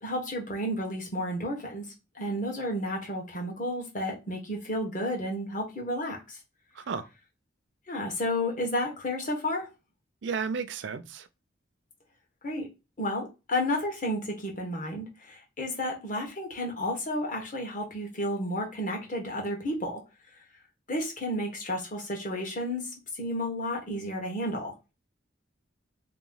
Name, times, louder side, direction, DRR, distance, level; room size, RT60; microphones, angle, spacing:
voice 1, 0.0-1.9 2.2-6.4 7.9-9.7 12.4-12.7 13.0-20.0 20.9-22.9 23.1-24.7, left 1 dB, 40° left, 1.2 m, -32 dB
voice 2, 6.8-7.1 10.2-11.3, right 5 dB, 65° right, 0.5 m, -33 dB
3.4 x 3.0 x 3.8 m
head